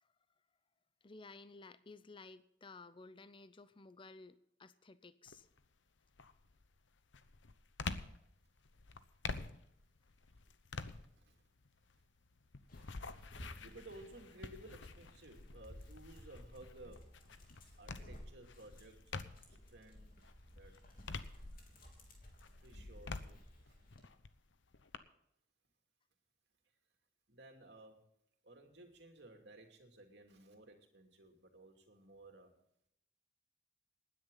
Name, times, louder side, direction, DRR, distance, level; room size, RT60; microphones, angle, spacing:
voice 1, 1.0-5.5, left 3 dB, 25° left, 14 dB, 0.6 m, -55 dB
sound 1, 5.3-5.7 6.1-19.7 20.1-22.0 22.4-25.0, left 4 dB, 80° left, 0.9 m, -48 dB
voice 2, 10.9-11.3 13.0-13.1 13.6-17.1 17.8-19.1 19.5-20.1 20.5-20.7 22.6-23.7 27.3-28.0 28.4-32.5, right 2 dB, 60° right, 3 dB, 2.8 m, -57 dB
Dog, 12.7-24.0, left 1 dB, 50° left, 3.2 m, -56 dB
19.5 x 10.0 x 4.0 m, 0.77 s
head